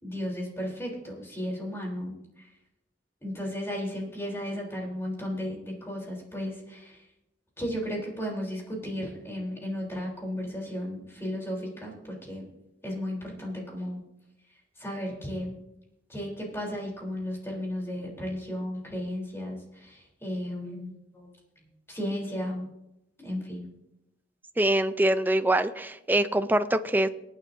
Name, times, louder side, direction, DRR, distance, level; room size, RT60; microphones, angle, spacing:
voice 1, 0.0-2.5 3.2-7.1 7.6-12.5 12.8-14.0 14.8-15.5 16.1-21.3 21.9-22.7 23.2-23.7, equal, 15° left, -2 dB, 3.6 m, -34 dB
voice 2, 24.6-27.1, right 1 dB, 10° right, 11 dB, 0.5 m, -24 dB
23.0 x 9.2 x 2.7 m, 0.87 s
head